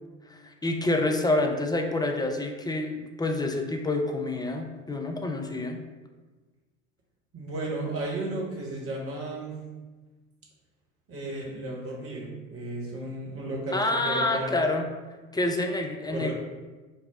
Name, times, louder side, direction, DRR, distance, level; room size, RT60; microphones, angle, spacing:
voice 1, 0.3-5.8 13.7-14.9 15.3-16.3, left 2 dB, 10° left, 3 dB, 0.5 m, -27 dB
voice 2, 7.3-9.6 11.1-13.8 14.0-14.6 16.1-16.3, right 2 dB, 40° right, -2 dB, 1.4 m, -34 dB
5.5 x 2.3 x 3.6 m, 1.3 s
figure-of-eight pair, 55°, 35 cm